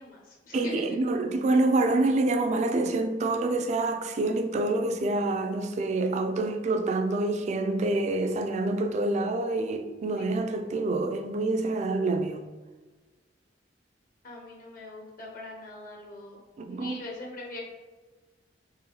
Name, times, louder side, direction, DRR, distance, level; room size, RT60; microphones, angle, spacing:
voice 1, 0.0-1.0 14.2-16.4 16.7-17.6, left 2 dB, 50° left, 0.7 m, -42 dB
voice 2, 0.5-12.4 16.6-17.0, right 2 dB, 40° right, 0.3 m, -27 dB
3.7 x 3.0 x 2.9 m
head